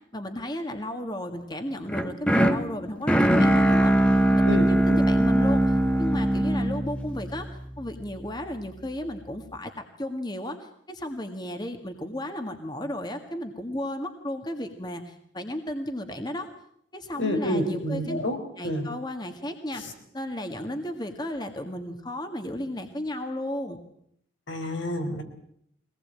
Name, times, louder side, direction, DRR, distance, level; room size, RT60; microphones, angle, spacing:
voice 1, 0.1-3.9 4.3-7.5 7.8-16.5 16.9-18.2 18.6-19.8 20.1-23.8, left 1 dB, 20° left, 6 dB, 1.8 m, -34 dB
sound 1, 1.9-8.0, right 1 dB, 5° left, 1.2 m, -22 dB
voice 2, 4.4-5.0 17.2-18.4 18.6-18.9 19.8-19.9 24.5-25.2, equal, 80° left, 4 dB, 4.5 m, -29 dB
24.0 x 19.0 x 8.8 m, 0.69 s
head